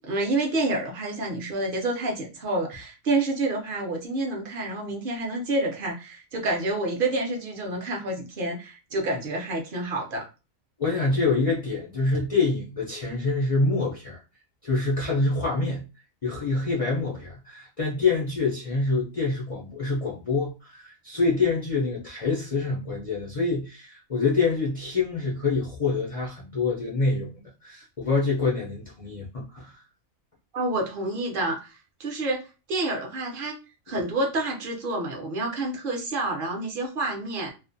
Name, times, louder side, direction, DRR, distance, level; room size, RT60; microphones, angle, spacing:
voice 1, 0.1-10.2 30.5-32.4 32.7-33.5 33.9-37.5, right 2 dB, 55° right, 0.7 m, -28 dB
voice 2, 10.8-14.2 14.6-15.8 16.2-27.3 27.6-29.8, left 3 dB, 60° left, 0.3 m, -26 dB
2.5 x 2.1 x 2.5 m
omnidirectional pair, 1.4 m